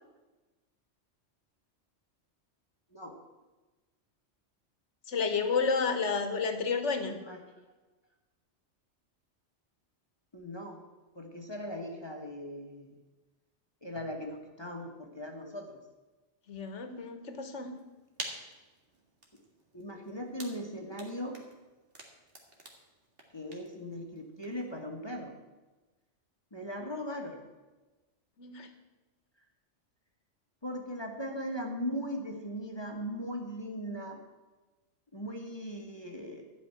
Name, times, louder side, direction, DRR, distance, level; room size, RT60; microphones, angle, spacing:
voice 1, 5.1-7.2 16.5-17.7 28.4-28.7, left 5 dB, 75° left, 8 dB, 1.5 m, -31 dB
voice 2, 10.3-10.8 11.1-13.0 13.8-15.8 19.7-21.4 23.3-25.3 26.5-27.4 30.6-34.2 35.1-36.4, equal, 20° left, 2 dB, 1.3 m, -39 dB
sound 1, 17.7-24.8, right 2 dB, 50° right, 2.0 m, -49 dB
13.0 x 5.7 x 8.8 m, 1.2 s
omnidirectional pair, 1.2 m